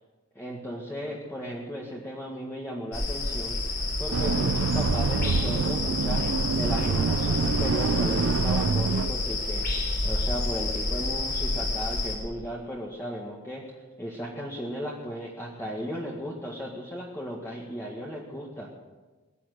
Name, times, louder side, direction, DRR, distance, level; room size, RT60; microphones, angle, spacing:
voice 1, 0.4-3.6 4.0-13.6 14.0-18.7, equal, 15° left, -3 dB, 1.9 m, -35 dB
sound 1, 2.9-12.1, left 2 dB, 50° left, 4.2 m, -29 dB
sound 2, 4.1-9.1, right 5 dB, 85° right, 0.5 m, -26 dB
21.0 x 10.5 x 6.7 m, 1.3 s
head